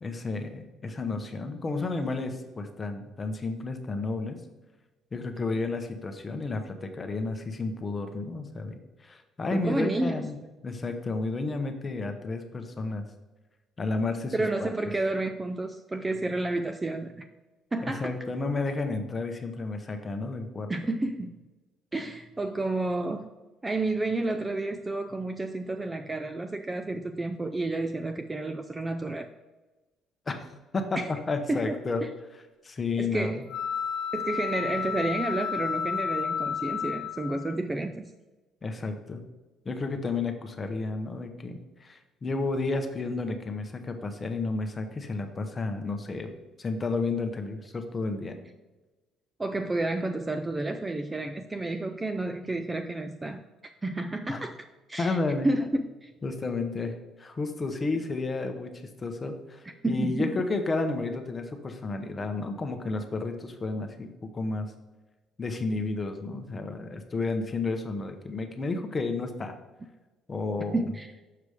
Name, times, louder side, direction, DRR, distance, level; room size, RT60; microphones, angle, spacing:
voice 1, 0.0-4.4 5.1-13.0 13.8-14.3 14.6-14.7 17.8-20.7 30.3-30.5 30.7-32.0 32.6-33.4 38.6-39.2 39.6-46.3 46.6-48.4 54.3-54.4 55.0-55.5 56.2-64.7 65.4-69.5 70.3-70.8, left 3 dB, 20° left, 6 dB, 0.8 m, -31 dB
voice 2, 9.5-10.3 14.3-17.3 17.7-18.1 20.7-21.4 21.9-23.3 23.6-29.3 31.0-31.1 31.5-31.8 32.0-32.1 33.0-33.4 34.1-38.0 49.4-53.4 53.8-54.6 54.9-55.2 55.4-56.1 59.8-60.4 70.7-71.1, right 2 dB, 15° right, 7 dB, 0.3 m, -30 dB
sound 1, 33.5-37.6, left 7 dB, 80° left, 1.0 m, -31 dB
6.8 x 4.9 x 4.9 m, 1.2 s
cardioid pair, 155°, 0 cm